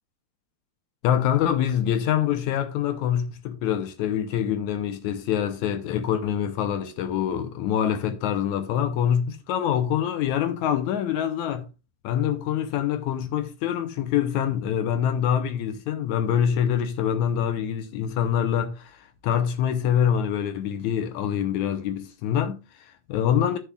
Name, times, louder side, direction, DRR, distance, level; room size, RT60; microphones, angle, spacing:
voice 1, 1.0-11.7 12.0-23.6, left 9 dB, 80° left, 2.0 m, -25 dB
12.0 x 6.8 x 2.3 m
omnidirectional pair, 3.6 m